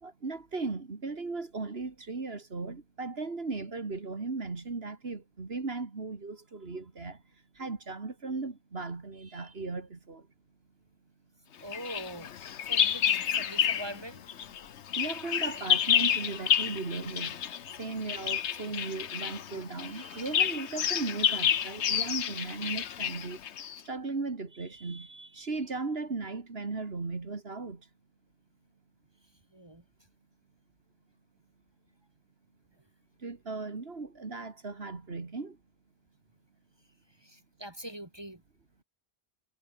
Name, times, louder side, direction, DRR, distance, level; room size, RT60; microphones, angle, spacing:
voice 1, 0.0-7.2 7.5-10.3 15.0-17.4 17.8-23.4 23.8-27.9 33.2-35.6, right 3 dB, 65° right, 2.4 m, -37 dB
voice 2, 11.6-12.3 12.7-14.2 29.5-29.8 37.2-38.4, right 1 dB, 25° right, 1.9 m, -43 dB
Bird vocalization bird call bird song, 11.7-14.0 14.3-23.8, left 9 dB, 90° left, 1.2 m, -29 dB
omnidirectional pair, 1.1 m